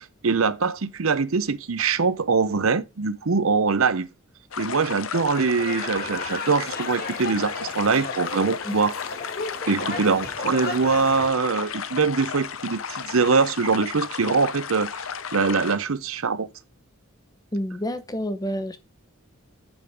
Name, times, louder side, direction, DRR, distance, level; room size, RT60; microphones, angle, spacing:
voice 1, 0.0-4.1 4.6-8.9 9.7-14.9 15.3-16.5, right 4 dB, 75° right, 0.7 m, -23 dB
sound 1, 4.5-15.8, left 7 dB, 70° left, 0.8 m, -34 dB
sound 2, 5.3-11.3, left 3 dB, 45° left, 1.9 m, -35 dB
voice 2, 17.5-18.8, equal, 20° left, 0.8 m, -29 dB
8.2 x 5.4 x 4.8 m
head